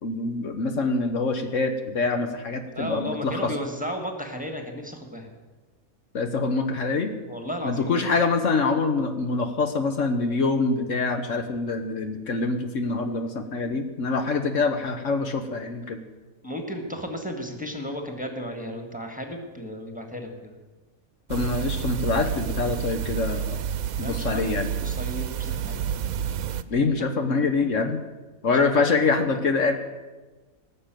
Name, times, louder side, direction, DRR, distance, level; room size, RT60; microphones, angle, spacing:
voice 1, 0.0-3.5 6.1-7.1 7.6-16.0 21.3-23.6 24.0-24.7 26.7-28.0 28.4-29.7, left 4 dB, 65° left, 6 dB, 1.4 m, -25 dB
voice 2, 2.6-5.4 7.3-8.1 16.4-20.6 24.0-25.9 28.7-28.8, equal, 5° right, 3 dB, 1.6 m, -34 dB
sound 1, 21.3-26.6, right 9 dB, 90° right, 1.1 m, -29 dB
18.0 x 6.9 x 9.1 m, 1.2 s
omnidirectional pair, 1.5 m